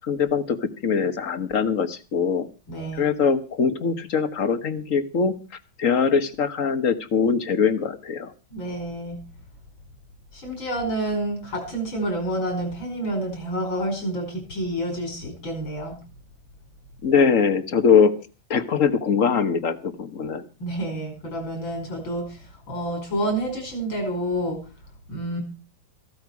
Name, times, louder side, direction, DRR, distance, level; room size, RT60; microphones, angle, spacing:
voice 1, 0.0-2.5 2.9-5.3 5.8-8.3 17.0-18.1 18.5-20.4, left 6 dB, 45° left, 10 dB, 1.5 m, -22 dB
voice 2, 2.7-3.1 8.5-9.2 10.3-16.0 20.6-24.6 25.1-25.4, right 1 dB, 75° left, 3 dB, 5.9 m, -29 dB
15.5 x 13.5 x 4.8 m, 0.34 s
omnidirectional pair, 2.2 m